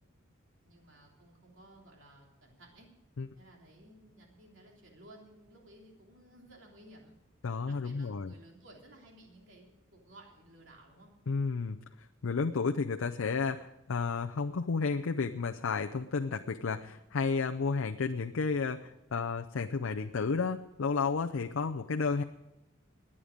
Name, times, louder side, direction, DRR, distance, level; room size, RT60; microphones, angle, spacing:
voice 1, 0.6-2.9 3.3-7.1 7.6-11.1, right 1 dB, 65° right, 0 dB, 3.2 m, -56 dB
voice 2, 7.4-8.3 11.3-11.8 12.2-22.2, left 4 dB, 75° left, 6 dB, 0.5 m, -32 dB
21.5 x 8.7 x 5.1 m, 0.97 s
head